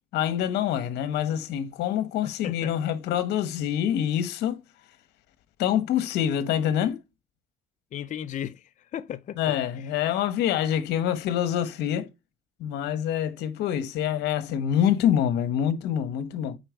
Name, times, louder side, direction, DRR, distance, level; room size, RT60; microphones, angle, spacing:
voice 1, 0.1-4.6 5.6-7.0 9.4-12.1 12.6-16.6, left 10 dB, 80° left, 1.3 m, -26 dB
voice 2, 2.2-2.9 7.9-9.9, left 10 dB, 45° left, 0.6 m, -37 dB
8.9 x 4.4 x 4.5 m
cardioid pair, 110°, 17 cm